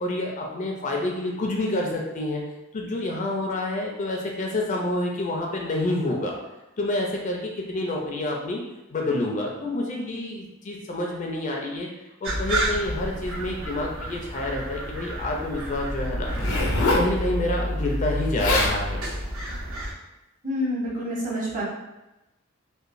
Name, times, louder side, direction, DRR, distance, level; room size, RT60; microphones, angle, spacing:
voice 1, 0.0-2.4 2.7-6.4 6.8-8.6 8.9-11.9 12.2-16.6 16.9-19.1, left 1 dB, 35° left, 0 dB, 0.4 m, -28 dB
sound 1, 12.2-19.9, right 1 dB, 65° right, 0.8 m, -30 dB
Zipper (clothing), 16.2-17.1 18.1-18.2 18.4-18.8 19.5-19.7, left 2 dB, 85° left, 0.5 m, -24 dB
voice 2, 20.4-21.6, equal, 40° right, -6 dB, 0.9 m, -28 dB
2.9 x 2.1 x 2.5 m, 0.97 s
head